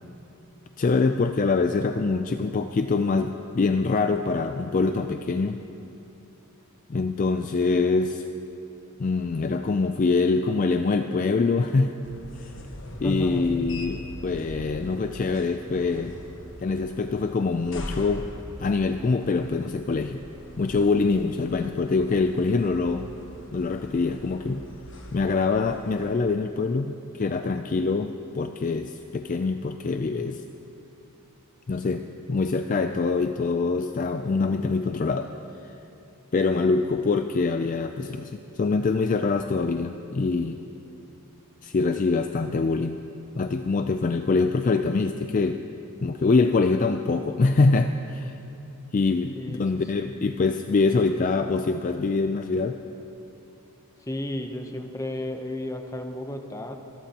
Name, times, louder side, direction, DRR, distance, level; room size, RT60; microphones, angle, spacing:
voice 1, 0.8-5.6 6.9-8.3 9.0-12.0 12.4-12.5 13.0-16.2 16.6-18.3 18.6-20.2 20.6-23.1 23.5-24.7 25.1-30.4 31.7-35.3 35.6-35.7 36.3-40.6 41.6-43.0 43.4-45.6 46.0-48.4 48.9-52.8, left 4 dB, 35° left, 7 dB, 0.3 m, -24 dB
sound 1, 12.0-26.1, left 1 dB, 55° left, 1.4 m, -42 dB
voice 2, 13.0-13.6 49.4-50.1 54.0-56.8, left 1 dB, 15° left, 5 dB, 0.8 m, -33 dB
26.5 x 13.5 x 2.9 m, 2.8 s
head